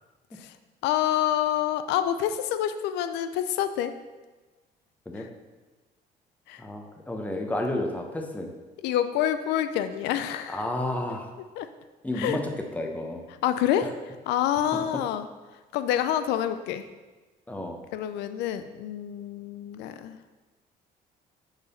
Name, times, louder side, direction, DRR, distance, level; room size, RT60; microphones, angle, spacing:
voice 1, 0.8-3.9 5.1-5.3 6.5-6.6 8.8-10.6 11.4-11.7 12.1-12.4 13.4-15.3 15.7-16.9 17.9-20.2, left 11 dB, 90° left, 11 dB, 0.4 m, -27 dB
voice 2, 6.6-8.5 10.5-11.3 12.0-12.4 12.7-13.2 14.7-14.8 17.5-17.8, left 1 dB, 10° left, 2 dB, 0.9 m, -31 dB
7.0 x 3.9 x 5.5 m, 1.2 s
cardioid pair, 110°, 17 cm